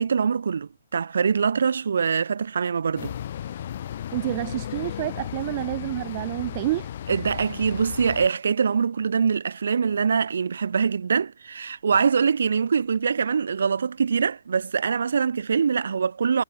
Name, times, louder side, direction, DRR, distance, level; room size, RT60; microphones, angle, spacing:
voice 1, 0.0-3.2 7.1-16.4, right 6 dB, 70° right, 2.1 m, -23 dB
sound 1, 3.0-8.3, left 10 dB, 40° left, 1.5 m, -35 dB
voice 2, 4.1-6.9, right 18 dB, 25° right, 0.6 m, -28 dB
hypercardioid pair, 170°, 0 cm